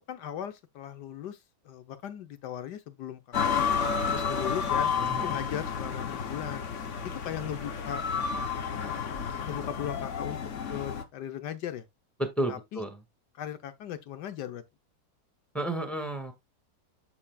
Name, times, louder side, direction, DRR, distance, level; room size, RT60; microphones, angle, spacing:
voice 1, 0.1-1.4 1.6-3.2 3.5-3.7 4.0-4.9 5.2-6.7 7.0-8.0 9.4-10.4 10.7-11.8 12.5-12.8 13.3-14.6, left 10 dB, 70° left, 1.4 m, -37 dB
sound 1, 3.3-11.0, left 6 dB, 50° left, 1.1 m, -31 dB
voice 2, 5.0-5.3 12.2-13.0 15.5-16.3, right 1 dB, ahead, 1.6 m, -32 dB
12.5 x 4.8 x 2.3 m
omnidirectional pair, 2.0 m